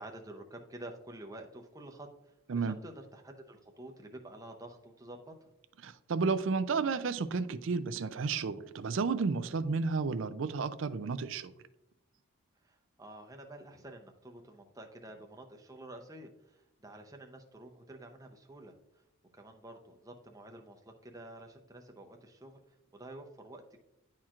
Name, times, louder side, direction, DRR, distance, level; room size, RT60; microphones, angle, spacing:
voice 1, 0.0-5.5 12.6-19.0 19.3-22.6 22.9-23.8, right 1 dB, 15° right, 3 dB, 0.6 m, -49 dB
voice 2, 5.8-11.5, right 4 dB, 60° right, 13 dB, 0.4 m, -32 dB
10.0 x 4.4 x 2.4 m, 0.87 s
head